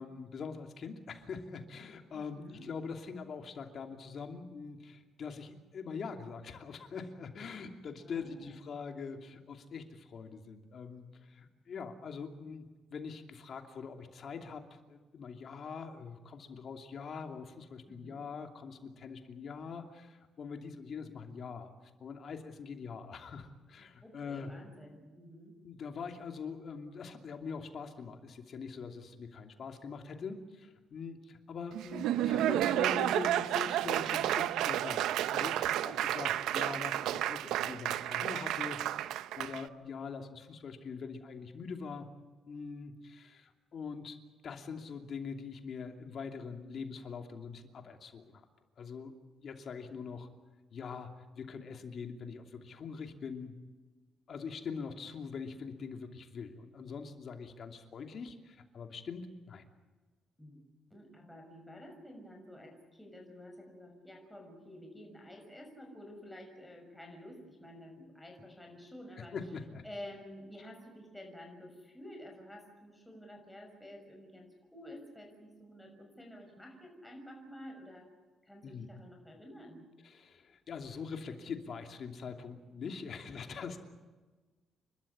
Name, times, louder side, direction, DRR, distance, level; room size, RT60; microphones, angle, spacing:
voice 1, 0.0-21.7 22.0-24.5 25.6-42.1 42.5-44.2 44.4-48.4 48.8-49.1 49.4-50.3 50.7-53.5 54.3-59.6 69.3-69.8 78.6-78.9 80.0-83.8, left 5 dB, 55° left, 5 dB, 2.8 m, -43 dB
voice 2, 2.1-2.7 8.0-8.6 17.9-18.2 24.0-25.5 36.2-36.3 60.4-60.6 60.9-69.4 69.8-78.1 78.4-79.9, left 1 dB, 5° left, 1 dB, 6.3 m, -50 dB
Laughter / Applause, 31.7-39.6, right 12 dB, 85° right, 0.7 m, -31 dB
30.0 x 13.0 x 9.9 m, 1.3 s
cardioid pair, 90°, 0 cm